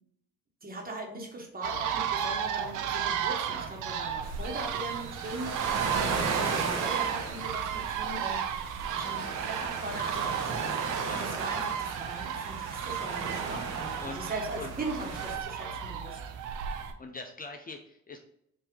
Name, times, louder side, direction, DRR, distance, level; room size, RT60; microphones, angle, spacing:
voice 1, 0.6-10.4 11.2-16.2, right 2 dB, 30° right, 0 dB, 1.4 m, -40 dB
sound 1, 1.6-16.9, right 8 dB, 80° right, 0.6 m, -34 dB
sound 2, 4.2-15.4, right 4 dB, 60° right, 0.9 m, -36 dB
voice 2, 17.0-18.2, left 3 dB, 30° left, 4 dB, 0.5 m, -42 dB
4.6 x 2.8 x 3.9 m, 0.75 s
cardioid pair, 90°, 30 cm